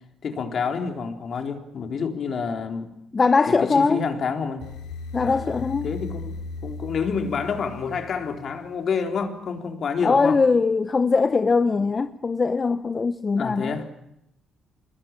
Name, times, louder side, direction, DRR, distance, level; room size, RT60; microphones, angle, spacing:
voice 1, 0.2-2.9 3.5-4.6 5.2-6.3 6.6-10.4 13.3-13.9, left 5 dB, 55° left, 3.9 m, -28 dB
voice 2, 3.1-4.0 5.1-5.9 10.0-13.8, left 4 dB, 30° left, 0.9 m, -21 dB
sound 1, 4.6-8.7, left 4 dB, 85° left, 3.5 m, -37 dB
26.5 x 21.0 x 9.1 m
cardioid pair, 90°, 0 cm